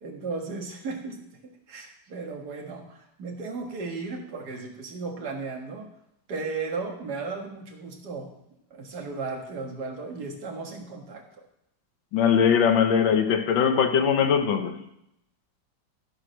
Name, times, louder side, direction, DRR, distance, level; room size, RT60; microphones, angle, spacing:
voice 1, 0.0-1.2 1.7-5.9 6.3-8.3 8.7-11.3, right 4 dB, 60° right, 2.1 m, -35 dB
voice 2, 12.1-14.8, left 7 dB, 80° left, 1.7 m, -21 dB
12.5 x 4.8 x 6.3 m
omnidirectional pair, 2.1 m